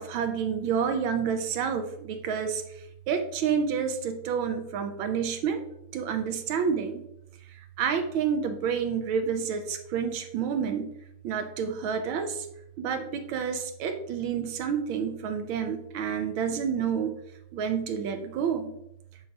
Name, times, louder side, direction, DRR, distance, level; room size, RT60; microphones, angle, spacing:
voice 1, 0.0-5.6 5.9-7.0 7.5-10.9 11.2-12.5 12.8-17.2 17.5-18.7, right 7 dB, 75° right, 7 dB, 1.5 m, -29 dB
7.6 x 5.2 x 2.9 m, 0.78 s
omnidirectional pair, 2.4 m